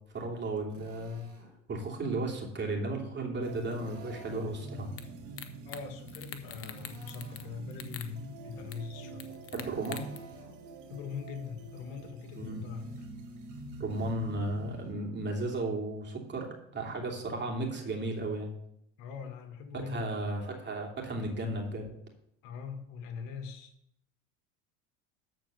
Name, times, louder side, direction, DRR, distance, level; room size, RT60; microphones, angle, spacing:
voice 1, 0.1-1.2 1.7-4.9 9.5-10.0 12.4-12.7 13.8-18.5 19.7-21.9, right 2 dB, 30° right, 1 dB, 2.9 m, -34 dB
Drill, 0.7-1.5 3.7-4.6 6.7-7.6 9.6-10.6, right 3 dB, 85° right, 2.7 m, -55 dB
sound 1, 3.4-14.9, right 2 dB, 50° right, 1.8 m, -46 dB
sound 2, 5.0-5.1 5.4-5.8 6.1-7.4 7.7-8.1 8.7-8.8 9.2-10.2, left 9 dB, 35° left, 1.2 m, -43 dB
voice 2, 5.6-9.3 10.9-13.1 19.0-20.2 22.4-23.7, left 6 dB, 60° left, 6 dB, 1.8 m, -42 dB
13.0 x 4.5 x 6.7 m, 0.75 s
hypercardioid pair, 80°, 38 cm